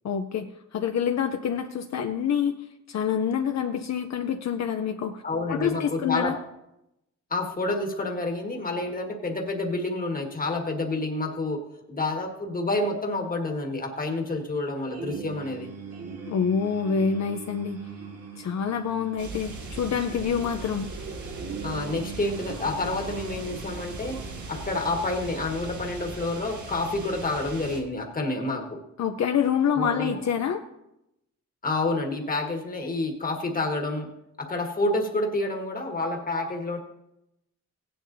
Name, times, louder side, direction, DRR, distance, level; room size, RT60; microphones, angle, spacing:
voice 1, 0.0-2.5 2.9-5.2 5.5-6.4 16.3-17.8 18.4-20.9 29.0-30.6, left 7 dB, 65° left, 6 dB, 0.6 m, -27 dB
voice 2, 5.2-6.4 7.3-11.6 11.9-15.7 21.6-24.2 24.5-28.8 29.7-30.2 31.6-34.1 34.4-36.8, left 2 dB, 30° left, 2 dB, 1.5 m, -29 dB
sound 1, 14.9-26.1, right 5 dB, 55° right, 1.6 m, -42 dB
sound 2, 19.2-27.8, right 3 dB, 85° right, 1.6 m, -39 dB
17.0 x 10.0 x 2.7 m, 0.86 s
wide cardioid pair, 170°, 29 cm